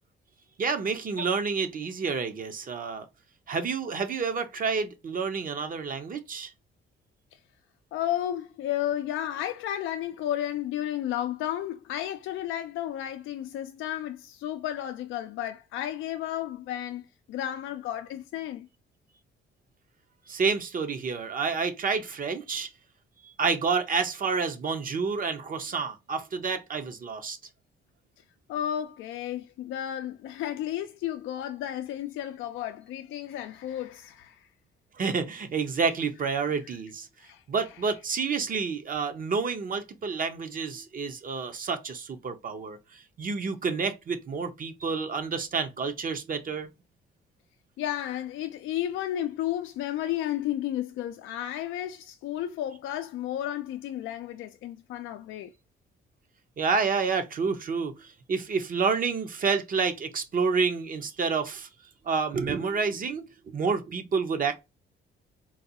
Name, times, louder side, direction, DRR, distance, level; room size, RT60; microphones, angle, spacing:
voice 1, 0.6-3.1 3.5-6.5 20.3-22.7 23.2-27.4 35.0-37.1 37.5-46.7 56.6-61.7 62.1-64.6, right 5 dB, 45° right, 0.7 m, -29 dB
voice 2, 7.9-17.0 17.3-18.7 28.5-34.4 37.2-37.4 47.8-55.5, left 12 dB, 80° left, 0.4 m, -32 dB
3.9 x 2.3 x 2.7 m
cardioid pair, 90°, 20 cm